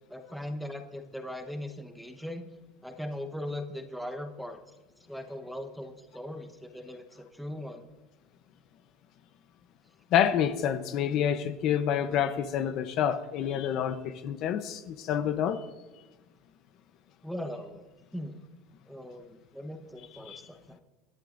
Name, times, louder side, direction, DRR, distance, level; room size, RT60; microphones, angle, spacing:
voice 1, 0.1-2.5 2.8-4.6 5.1-7.9 17.2-17.8 18.1-18.4 18.9-20.8, left 1 dB, ahead, 5 dB, 1.0 m, -39 dB
voice 2, 10.1-15.6 20.2-20.4, left 9 dB, 40° left, 10 dB, 0.7 m, -28 dB
26.0 x 11.5 x 2.6 m, 1.2 s
cardioid pair, 160°, 0 cm